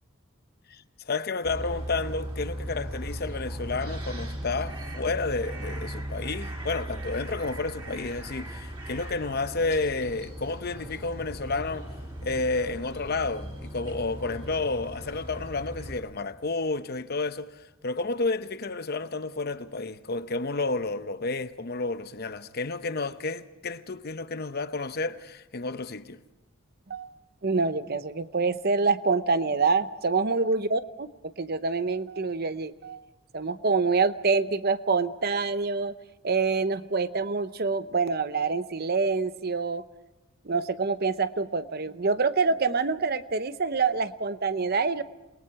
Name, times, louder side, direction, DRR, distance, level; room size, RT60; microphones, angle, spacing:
voice 1, 0.7-11.9 12.2-26.2, left 3 dB, 45° left, 0.8 m, -31 dB
sound 1, 1.4-16.0, right 1 dB, 25° right, 3.8 m, -37 dB
voice 2, 27.4-31.1 31.4-33.0 33.3-35.9 36.2-39.8 40.4-45.0, right 4 dB, 50° right, 0.8 m, -26 dB
28.5 x 20.5 x 4.8 m
head